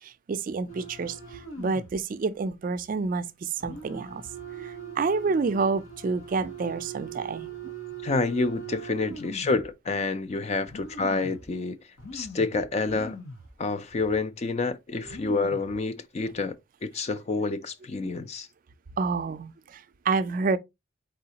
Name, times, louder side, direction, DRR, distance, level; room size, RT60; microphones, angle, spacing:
voice 1, 0.0-4.2 4.5-7.5 19.0-20.6, right 4 dB, 40° right, 0.3 m, -29 dB
sound 1, 0.7-2.0 2.4-2.5 3.6-9.7 10.3-10.4 10.7-11.5 12.0-13.5 13.9-14.0 14.7-14.8 15.0-15.8 16.3-16.5, right 4 dB, 75° left, 1.0 m, -41 dB
voice 2, 8.0-11.8 12.1-13.2 13.6-16.5 16.8-18.5, left 3 dB, 30° left, 0.3 m, -28 dB
4.1 x 3.8 x 2.8 m
head